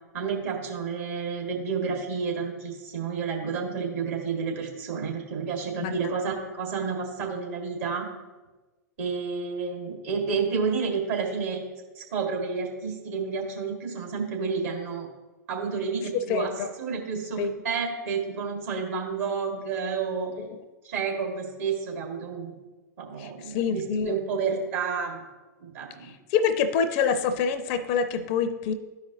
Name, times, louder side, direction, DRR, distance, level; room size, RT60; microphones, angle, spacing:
voice 1, 0.1-8.1 9.0-11.6 12.0-15.1 15.5-20.3 20.8-22.6 23.0-25.2 25.6-26.1, right 5 dB, 55° right, 1 dB, 1.8 m, -30 dB
voice 2, 16.3-16.7 17.4-17.5 23.5-24.2 26.3-28.7, left 6 dB, 40° left, 11 dB, 0.6 m, -25 dB
12.0 x 5.1 x 2.7 m, 1.2 s
figure-of-eight pair, 105°, 10 cm